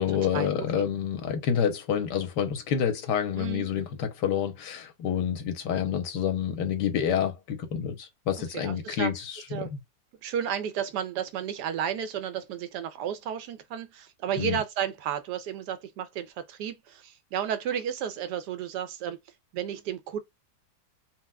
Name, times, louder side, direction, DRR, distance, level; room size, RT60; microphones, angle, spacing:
voice 1, 0.0-9.8 14.4-14.6, left 8 dB, 90° left, 1.3 m, -28 dB
voice 2, 3.4-3.7 8.5-9.1 9.5-9.7 10.2-19.2 19.5-20.2, right 9 dB, 80° right, 1.2 m, -32 dB
4.3 x 2.0 x 2.2 m
omnidirectional pair, 1.8 m